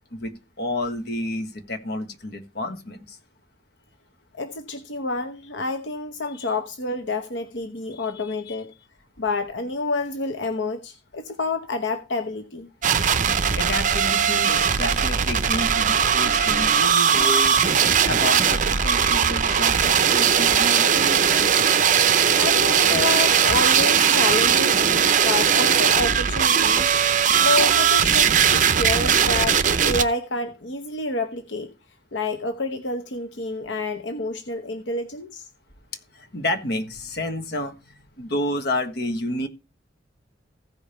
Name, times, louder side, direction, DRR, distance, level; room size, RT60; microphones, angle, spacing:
voice 1, 0.1-3.2 6.4-6.5 7.9-8.6 13.5-17.6 18.0-21.2 36.1-39.5, left 1 dB, 60° left, 1.5 m, -30 dB
voice 2, 4.3-8.7 9.2-12.7 22.4-24.8 25.2-26.9 27.4-31.7 32.1-35.5, left 2 dB, 85° left, 0.9 m, -28 dB
sound 1, 12.8-30.0, right 7 dB, 45° right, 0.7 m, -19 dB
15.5 x 5.2 x 4.3 m
head